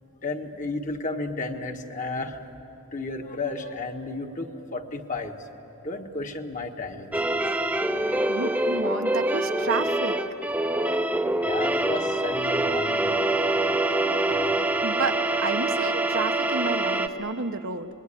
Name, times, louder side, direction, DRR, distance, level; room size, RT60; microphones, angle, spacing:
voice 1, 0.2-2.4 2.9-5.3 5.8-7.4 11.4-13.2 14.2-14.5, left 3 dB, 35° left, 4 dB, 1.4 m, -33 dB
sound 1, 7.1-17.1, right 1 dB, 10° right, 0.7 m, -25 dB
voice 2, 8.3-10.2 14.8-17.9, right 4 dB, 75° right, 7 dB, 1.1 m, -30 dB
27.0 x 21.5 x 9.9 m, 3.0 s
head